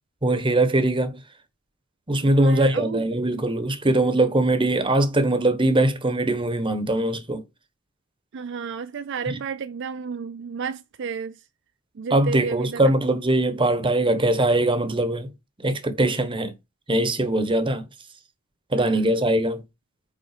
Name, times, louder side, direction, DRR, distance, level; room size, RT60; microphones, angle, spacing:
voice 1, 0.2-1.2 2.1-7.4 9.3-9.4 12.1-15.3 15.6-16.5 16.9-17.9 18.7-19.6, right 1 dB, 25° right, 1.1 m, -21 dB
voice 2, 2.2-3.0 8.3-11.4 12.0-12.8 18.8-19.0, right 5 dB, 55° right, 0.4 m, -32 dB
9.1 x 3.8 x 5.0 m
head